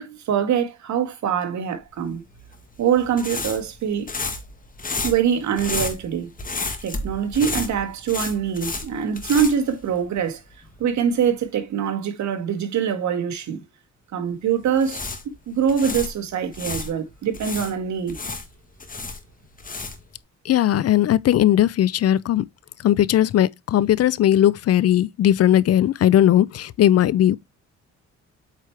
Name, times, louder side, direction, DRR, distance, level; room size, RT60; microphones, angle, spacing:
voice 1, 0.0-2.2 2.8-4.1 5.0-6.3 6.8-10.4 10.8-13.6 14.1-15.0 15.5-18.2, right 8 dB, 70° right, 1.8 m, -24 dB
sound 1, 2.3-10.4 10.7-10.8 14.6-16.9 17.3-20.2, left 3 dB, 30° left, 1.9 m, -31 dB
voice 2, 20.5-22.4 22.8-27.4, left 12 dB, 55° left, 0.5 m, -18 dB
8.3 x 4.6 x 3.3 m
cardioid pair, 90°, 30 cm